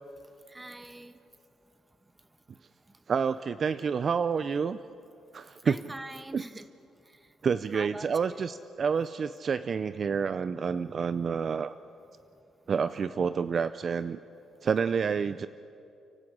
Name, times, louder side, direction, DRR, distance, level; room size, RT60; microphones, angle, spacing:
voice 1, 0.5-1.2 5.6-6.7 7.7-8.4, right 1 dB, 15° right, 11 dB, 1.2 m, -42 dB
voice 2, 3.1-4.8 5.3-5.8 6.3-6.4 7.4-11.7 12.7-14.2 14.6-15.5, right 6 dB, 45° right, 14 dB, 0.5 m, -28 dB
30.0 x 12.5 x 8.7 m, 2.6 s
cardioid pair, 90°, 0 cm